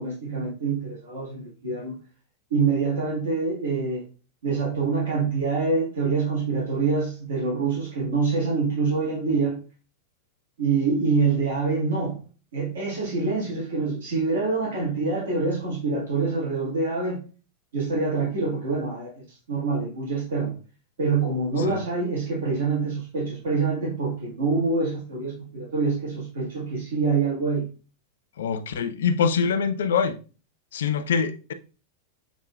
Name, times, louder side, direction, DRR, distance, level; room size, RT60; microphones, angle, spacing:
voice 1, 0.0-1.9 2.5-4.0 4.4-9.6 10.6-12.2 12.5-17.2 17.7-20.5 21.0-27.7, right 4 dB, 60° right, 1.3 m, -25 dB
voice 2, 28.4-30.2 30.7-31.5, left 6 dB, 60° left, 0.4 m, -24 dB
6.0 x 2.6 x 2.3 m
figure-of-eight pair, 90°, 0 cm